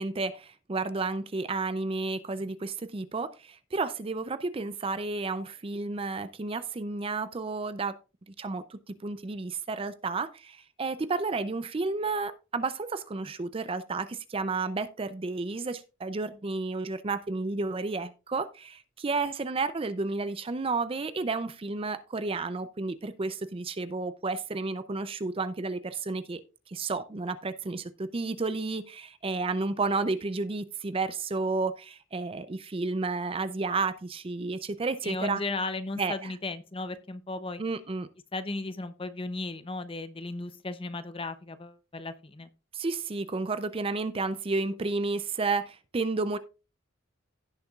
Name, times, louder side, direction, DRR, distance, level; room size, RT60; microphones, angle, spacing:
voice 1, 0.0-8.0 8.3-26.4 26.7-35.4 36.0-36.3 37.6-38.1 42.7-46.4, right 3 dB, 25° right, 0.5 m, -31 dB
voice 2, 35.0-37.6 38.3-42.5, left 2 dB, 25° left, 0.7 m, -35 dB
16.5 x 6.8 x 2.4 m
head